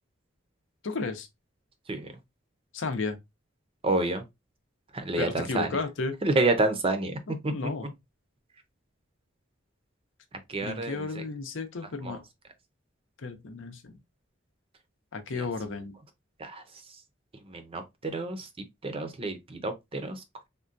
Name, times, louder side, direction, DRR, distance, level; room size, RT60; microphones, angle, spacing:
voice 1, 0.8-1.3 2.7-3.2 5.2-6.2 7.5-7.9 10.6-12.2 13.2-14.0 15.1-16.0, left 4 dB, 75° left, 0.6 m, -33 dB
voice 2, 3.8-4.2 4.9-5.8 6.2-7.2 7.4-7.7 10.5-11.3 12.0-12.2 15.3-15.4 16.4-16.6 17.5-18.5 18.8-20.2, right 2 dB, 30° right, 0.5 m, -29 dB
3.7 x 2.2 x 2.5 m
head